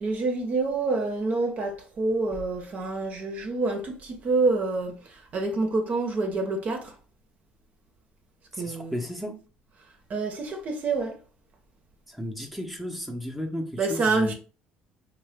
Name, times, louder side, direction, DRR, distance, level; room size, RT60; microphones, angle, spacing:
voice 1, 0.0-7.0 8.6-9.0 10.1-11.2 13.8-14.3, right 3 dB, 45° right, 0.7 m, -27 dB
voice 2, 8.5-9.4 12.1-14.3, equal, ahead, 0.7 m, -34 dB
2.7 x 2.2 x 3.4 m
supercardioid pair, 85°, 4 cm